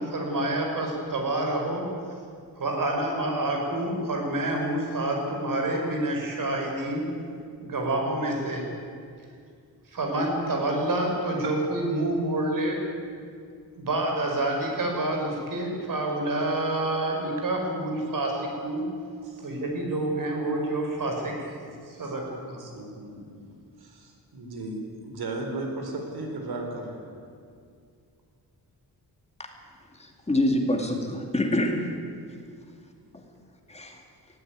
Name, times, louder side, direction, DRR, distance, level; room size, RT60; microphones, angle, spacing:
voice 1, 0.0-1.9 2.6-7.1 7.6-8.7 9.9-12.8 13.8-18.9 19.4-22.7, right 1 dB, 60° right, 2 dB, 5.5 m, -28 dB
voice 2, 19.2-19.5 22.0-22.1 22.4-27.0, right 2 dB, 80° right, 3 dB, 4.4 m, -36 dB
voice 3, 30.0-31.9 33.1-33.2 33.7-34.0, left 1 dB, 15° left, 3 dB, 2.3 m, -26 dB
19.5 x 16.5 x 9.6 m, 2.3 s
wide cardioid pair, 145°, 37 cm